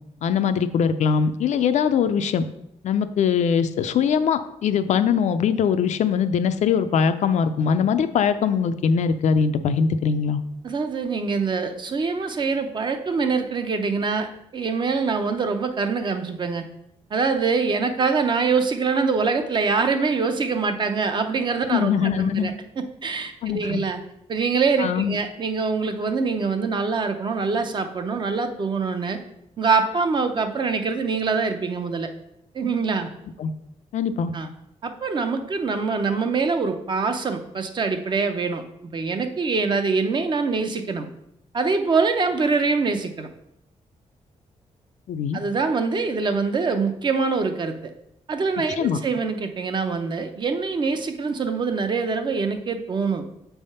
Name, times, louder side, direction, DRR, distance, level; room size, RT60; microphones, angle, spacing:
voice 1, 0.2-2.4 2.8-10.4 21.7-22.5 23.4-23.8 24.8-25.2 33.4-33.5 33.9-34.3 45.1-45.4 48.8-49.0, left 7 dB, 70° left, 10 dB, 0.4 m, -22 dB
voice 2, 10.6-16.6 17.1-24.0 24.3-29.2 29.6-32.1 32.5-33.1 34.3-34.5 34.8-38.6 38.9-41.1 41.5-43.3 45.3-47.7 48.3-53.2, right 4 dB, 40° right, 7 dB, 0.6 m, -24 dB
7.1 x 3.4 x 5.5 m, 0.79 s
wide cardioid pair, 165°, 12 cm